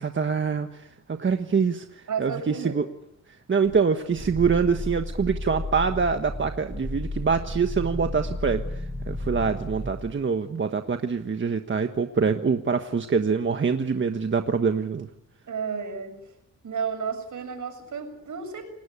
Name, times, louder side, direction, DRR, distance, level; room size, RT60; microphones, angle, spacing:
voice 1, 0.0-2.8 3.5-15.1, right 5 dB, 35° right, 7 dB, 1.4 m, -25 dB
voice 2, 2.1-2.8 15.5-16.3 16.6-18.7, right 6 dB, 65° right, 6 dB, 7.2 m, -32 dB
Growling, 3.7-10.0, left 1 dB, 5° right, 6.3 m, -33 dB
29.0 x 18.5 x 8.4 m, 0.81 s
cardioid pair, 100°, 33 cm